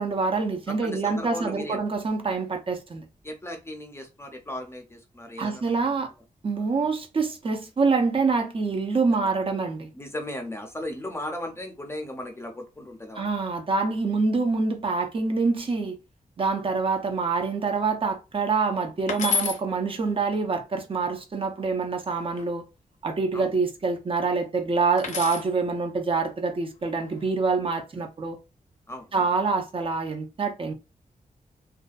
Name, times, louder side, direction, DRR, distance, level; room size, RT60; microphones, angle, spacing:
voice 1, 0.0-3.0 5.4-6.1 6.4-9.9 13.2-16.0 16.4-22.6 23.0-28.4 29.1-30.7, right 4 dB, 40° right, 0.5 m, -26 dB
voice 2, 0.7-1.8 3.2-5.8 6.6-6.7 9.9-13.3 23.3-23.5 27.6-27.7 27.9-28.1 28.9-29.1, left 1 dB, 15° left, 0.5 m, -36 dB
sound 1, 19.1-19.6 21.8-22.4 25.0-25.5 26.8-27.3, left 6 dB, 60° left, 0.6 m, -30 dB
2.4 x 2.1 x 2.4 m
wide cardioid pair, 165°, 15 cm